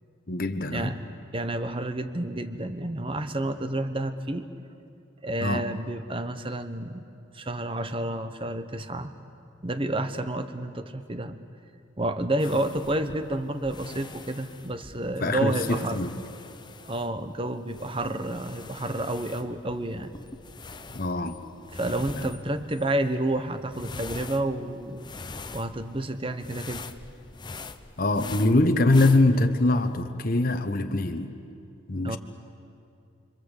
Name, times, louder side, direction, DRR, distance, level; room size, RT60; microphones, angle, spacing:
voice 1, 0.3-1.0 5.4-5.7 12.5-12.6 15.2-16.1 20.9-21.4 28.0-31.3 31.9-32.2, left 2 dB, 45° left, 6 dB, 1.1 m, -23 dB
voice 2, 1.3-4.5 5.2-7.0 7.3-9.1 9.6-11.4 12.0-16.0 16.8-20.1 21.7-25.1 25.5-26.9 32.0-32.2, right 1 dB, 25° right, 10 dB, 1.1 m, -30 dB
sound 1, 12.4-30.0, left 4 dB, 20° left, 0.7 m, -44 dB
30.0 x 23.5 x 8.2 m, 2.6 s
head